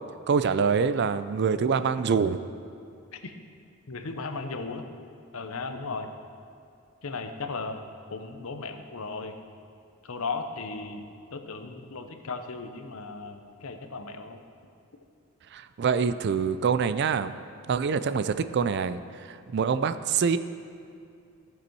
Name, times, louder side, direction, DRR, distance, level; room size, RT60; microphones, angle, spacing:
voice 1, 0.3-2.4 15.5-17.3 17.7-20.4, right 6 dB, 50° right, 12 dB, 0.4 m, -25 dB
voice 2, 3.9-4.8 5.3-6.1 7.0-7.8 8.1-9.4 10.0-14.4, left 4 dB, 70° left, 7 dB, 0.8 m, -36 dB
15.0 x 6.9 x 4.6 m, 2.4 s
head